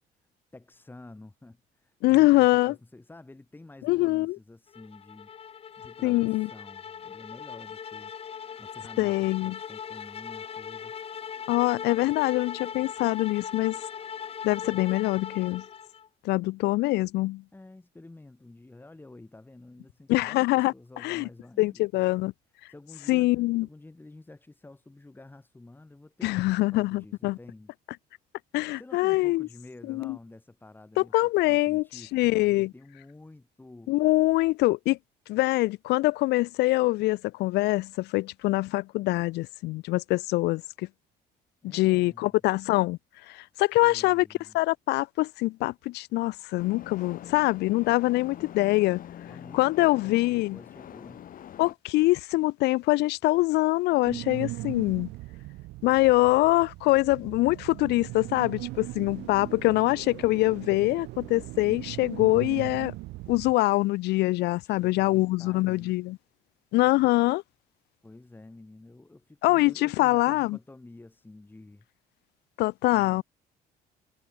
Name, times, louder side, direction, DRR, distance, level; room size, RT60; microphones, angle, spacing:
voice 1, 0.5-5.3 5.8-8.1 8.6-10.9 17.5-21.8 22.7-23.4 23.6-27.7 28.8-34.1 41.6-42.4 43.8-44.6 49.2-51.3 59.0-60.0 64.6-66.0 68.0-71.8 72.9-73.2, left 2 dB, 10° left, 3.4 m, -49 dB
voice 2, 2.0-2.7 3.8-4.4 6.0-6.5 9.0-9.6 11.5-13.8 14.4-15.6 16.2-17.4 20.1-20.7 21.0-21.3 21.6-22.3 23.1-23.7 26.2-27.4 28.5-29.5 29.9-30.2 31.0-32.7 33.9-35.0 35.3-40.9 41.6-43.0 43.3-44.3 44.5-49.0 49.5-50.6 51.6-55.1 55.8-62.9 63.3-66.2 66.7-67.4 69.4-70.6 72.6-73.2, left 19 dB, 80° left, 0.5 m, -24 dB
sound 1, 4.7-16.1, left 7 dB, 35° left, 0.8 m, -39 dB
sound 2, 46.6-51.7, left 10 dB, 55° left, 3.0 m, -44 dB
sound 3, 54.0-63.5, right 20 dB, 85° right, 1.5 m, -39 dB
cardioid pair, 110°, 17 cm